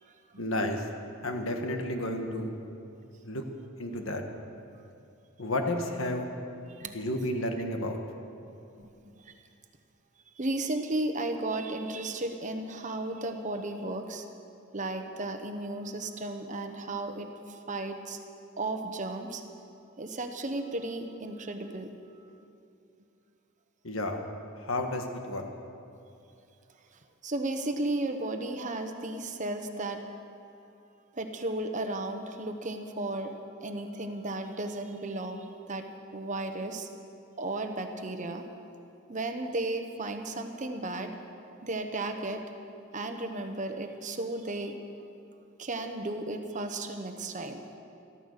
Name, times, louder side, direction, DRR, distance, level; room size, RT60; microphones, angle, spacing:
voice 1, 0.4-0.9 1.2-2.5 3.2-3.4 3.8-4.2 5.4-6.3 6.9-8.0 23.8-24.2 24.6-25.5, left 1 dB, 75° left, 4 dB, 1.5 m, -31 dB
voice 2, 8.8-9.3 10.4-14.2 14.7-18.2 18.6-19.4 20.0-21.9 27.2-30.0 31.1-33.3 33.6-35.9 36.1-36.9 37.4-38.4 39.1-41.1 41.6-42.4 42.9-44.8 45.6-47.6, right 2 dB, 35° right, 6 dB, 1.0 m, -34 dB
14.0 x 13.5 x 6.6 m, 2.6 s
head